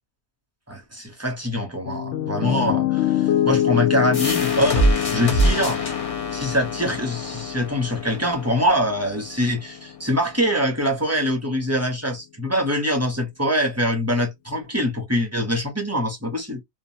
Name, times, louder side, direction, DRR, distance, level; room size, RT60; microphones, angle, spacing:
voice 1, 0.7-5.8 6.3-16.6, equal, 20° right, 0.4 m, -24 dB
Piano, 1.9-10.0, left 11 dB, 65° left, 0.8 m, -26 dB
sound 1, 4.1-9.5, right 1 dB, 35° left, 0.6 m, -25 dB
2.8 x 2.1 x 2.7 m
omnidirectional pair, 1.5 m